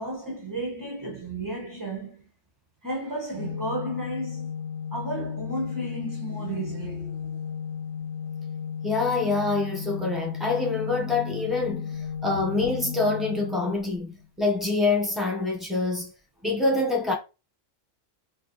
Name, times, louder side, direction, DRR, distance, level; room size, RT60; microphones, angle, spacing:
voice 1, 0.0-2.3 2.8-4.5 4.9-7.3, right 1 dB, 30° right, 0.4 m, -33 dB
Organ, 3.3-14.2, left 7 dB, 65° left, 0.8 m, -34 dB
voice 2, 8.8-16.1 16.4-17.1, left 3 dB, ahead, 0.9 m, -26 dB
2.8 x 2.6 x 4.0 m
omnidirectional pair, 1.4 m